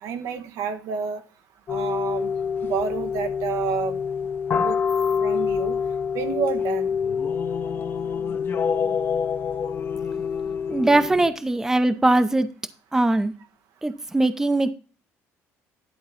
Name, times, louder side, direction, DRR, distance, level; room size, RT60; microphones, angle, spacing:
voice 1, 0.0-1.2 1.7-2.3 2.6-4.0 4.6-4.7 5.2-5.8 6.1-6.9, right 7 dB, 75° right, 1.2 m, -29 dB
sound 1, 1.7-11.3, left 6 dB, 40° left, 0.8 m, -26 dB
voice 2, 10.7-12.5 12.9-13.3 13.8-14.7, right 2 dB, 10° right, 0.7 m, -20 dB
11.5 x 4.0 x 5.6 m
cardioid pair, 120°, 6 cm